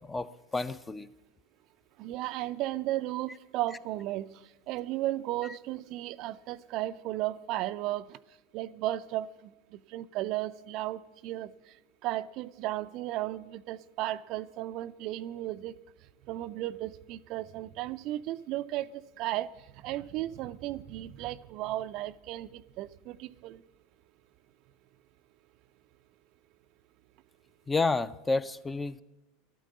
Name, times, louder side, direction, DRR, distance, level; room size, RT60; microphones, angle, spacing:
voice 1, 0.1-1.1 5.4-5.5 27.7-29.0, left 3 dB, 15° left, 0.5 m, -30 dB
voice 2, 2.0-4.3 4.7-8.2 8.5-9.3 9.9-11.5 12.0-15.7 16.3-19.5 19.8-23.6, right 15 dB, 45° right, 0.4 m, -34 dB
12.5 x 9.2 x 7.5 m
figure-of-eight pair, 80°, 0 cm